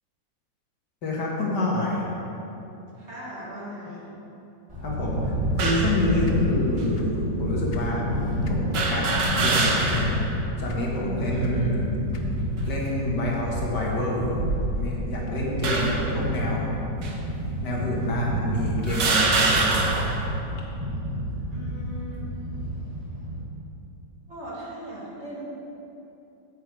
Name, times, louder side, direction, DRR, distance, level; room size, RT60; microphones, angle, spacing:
voice 1, 1.0-2.1 4.8-5.3 5.6-8.0 8.5-10.2 10.6-11.9 12.6-14.4 14.7-16.7 17.6-19.9, left 1 dB, 75° left, -3 dB, 2.2 m, -28 dB
voice 2, 3.0-4.1 11.3-11.8 21.5-22.3 24.3-25.4, equal, 40° right, -7 dB, 2.3 m, -38 dB
sound 1, 4.7-23.4, equal, 20° right, 2.2 m, -29 dB
sound 2, 5.6-6.0 6.8-6.9 8.7-10.2 10.6-10.7 11.9-12.3 13.0-13.3 14.2-15.0 15.6-16.1 17.0-17.1 18.0-18.1 18.9-20.2, right 3 dB, 90° right, 1.7 m, -25 dB
sound 3, 6.2-7.2 7.5-8.7 9.1-9.4 9.9-10.3 10.7-12.6, left 4 dB, 55° left, 0.7 m, -41 dB
9.1 x 8.5 x 4.7 m, 2.9 s
omnidirectional pair, 1.8 m